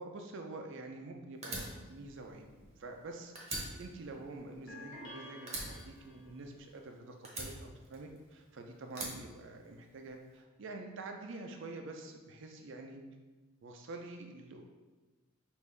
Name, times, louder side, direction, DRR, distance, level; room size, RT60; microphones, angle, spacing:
voice 1, 0.0-1.6 1.9-2.5 2.8-13.0 13.6-14.6, right 2 dB, 60° right, 3 dB, 0.5 m, -47 dB
Fire, 1.4-3.0 3.3-5.1 5.5-6.8 7.2-8.4 8.9-10.1, right 2 dB, 30° right, 0.8 m, -43 dB
sound 1, 4.7-6.4, left 1 dB, 60° left, 1.0 m, -50 dB
5.1 x 2.6 x 3.2 m, 1.2 s
head